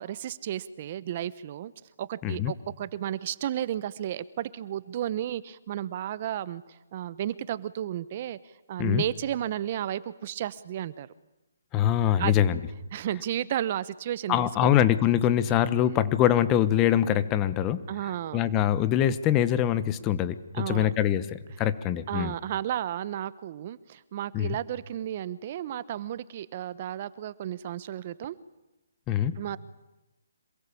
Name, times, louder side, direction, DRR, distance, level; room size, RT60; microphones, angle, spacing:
voice 1, 0.0-1.7 2.0-6.6 6.9-8.4 8.7-11.1 12.2-12.4 12.9-14.7 17.9-18.5 20.5-20.9 22.1-28.4 29.4-29.6, right 11 dB, 35° right, 17 dB, 1.0 m, -33 dB
voice 2, 11.7-12.6 14.3-17.8 18.3-22.3 24.3-24.6 29.1-29.3, left 11 dB, 20° left, 14 dB, 1.2 m, -24 dB
27.0 x 21.5 x 8.6 m, 0.97 s
hypercardioid pair, 160°, 0 cm